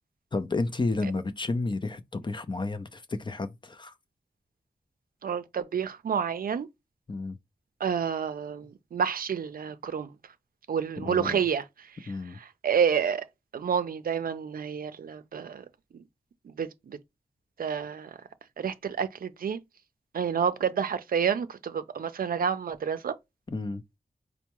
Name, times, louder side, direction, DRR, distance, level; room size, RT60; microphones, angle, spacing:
voice 1, 0.3-3.9 7.1-7.4 11.0-11.4 12.1-12.4 23.5-23.8, left 3 dB, 30° left, 0.5 m, -31 dB
voice 2, 5.2-6.7 7.8-10.1 10.7-11.6 12.0-12.1 12.4-13.2 13.5-15.6 15.9-16.0 16.6-17.0 17.6-18.1 18.6-19.6 20.1-23.2, right 7 dB, 75° right, 0.5 m, -29 dB
4.4 x 2.1 x 2.9 m
wide cardioid pair, 70°, 15 cm